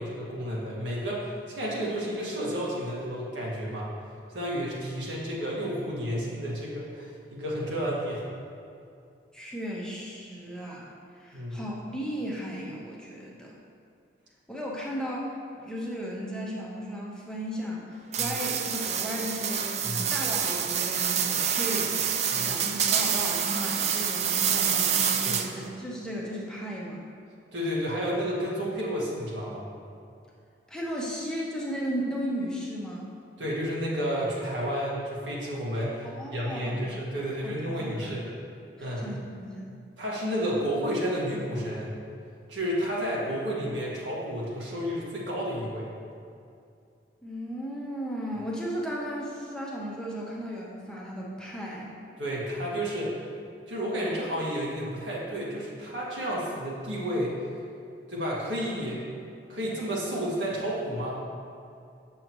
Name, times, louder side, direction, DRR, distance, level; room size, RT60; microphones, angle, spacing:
voice 1, 0.0-3.9 4.3-8.2 11.3-11.6 18.2-18.3 19.8-20.0 22.3-22.6 25.2-25.4 27.5-29.6 33.4-38.2 38.8-39.0 40.0-41.9 42.5-45.9 52.2-53.2 53.7-57.3 58.1-59.0 59.5-61.1, equal, 90° right, -5 dB, 1.7 m, -31 dB
voice 2, 9.3-13.6 14.5-27.1 30.7-33.1 36.0-36.8 37.4-38.1 38.8-39.7 47.2-51.9, equal, 5° left, -4 dB, 0.8 m, -35 dB
sound 1, 18.1-25.7, right 8 dB, 35° right, 0.4 m, -27 dB
7.8 x 6.4 x 3.0 m, 2.5 s
head